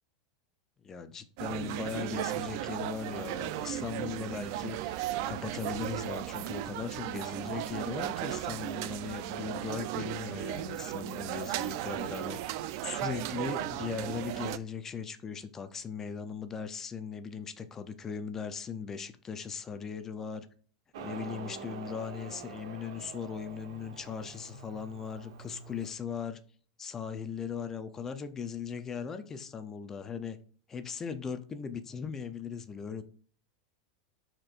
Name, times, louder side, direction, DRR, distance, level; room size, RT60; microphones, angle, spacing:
voice 1, 0.8-20.5 21.0-26.4 26.8-30.4 30.7-33.0, left 6 dB, 15° left, 0.5 m, -39 dB
sound 1, 1.4-14.6, right 13 dB, 45° right, 0.4 m, -36 dB
Motorcycle, 20.9-25.9, right 6 dB, 65° right, 1.2 m, -46 dB
11.5 x 4.4 x 2.5 m
supercardioid pair, 180°, 3 cm